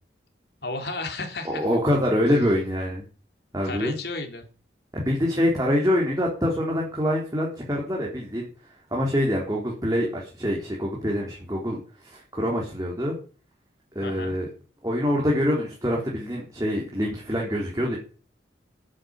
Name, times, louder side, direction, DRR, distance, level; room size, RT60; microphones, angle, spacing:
voice 1, 0.6-1.7 3.6-4.5 14.0-14.3, left 3 dB, 65° left, 4 dB, 3.6 m, -33 dB
voice 2, 1.5-3.0 3.5-3.9 5.0-8.5 8.9-11.8 12.0-13.2 13.9-14.5 14.8-18.0, equal, 20° right, -3 dB, 3.7 m, -25 dB
10.0 x 9.9 x 8.9 m, 0.38 s
head